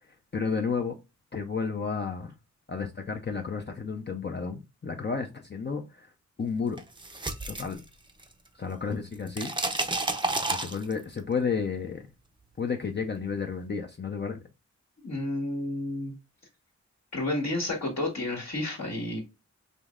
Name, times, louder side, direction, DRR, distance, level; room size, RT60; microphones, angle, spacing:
voice 1, 0.0-0.9 1.3-2.3 2.7-6.1 6.4-6.8 7.5-7.8 8.6-9.5 10.5-12.1 12.6-14.4, left 5 dB, 35° left, 0.6 m, -32 dB
sound 1, 6.8-8.5 8.7-11.2, right 2 dB, 15° right, 0.6 m, -31 dB
voice 2, 15.0-16.1 17.1-19.2, left 1 dB, 65° left, 1.6 m, -31 dB
5.2 x 3.1 x 2.4 m
wide cardioid pair, 105°, 29 cm